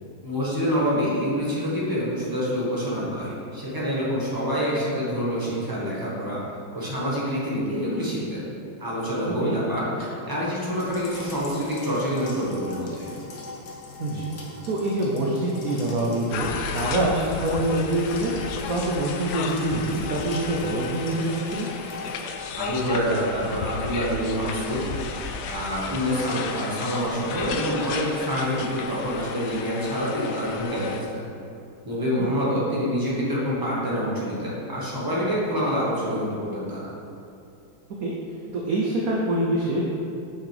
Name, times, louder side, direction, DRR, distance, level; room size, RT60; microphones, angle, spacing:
voice 1, 0.2-6.4 6.7-8.4 8.8-13.1 22.6-24.8 25.5-31.2 31.8-36.9, equal, 15° right, -7 dB, 1.0 m, -26 dB
sound 1, 10.7-22.2, left 3 dB, 60° left, 1.4 m, -41 dB
voice 2, 14.0-14.3 14.7-18.4 18.7-21.7 32.0-32.3 38.0-38.1 38.5-39.8, right 1 dB, 65° right, -3 dB, 0.9 m, -25 dB
sound 2, 16.3-31.0, left 5 dB, 75° left, 0.9 m, -33 dB
7.2 x 5.9 x 3.3 m, 2.6 s
omnidirectional pair, 2.2 m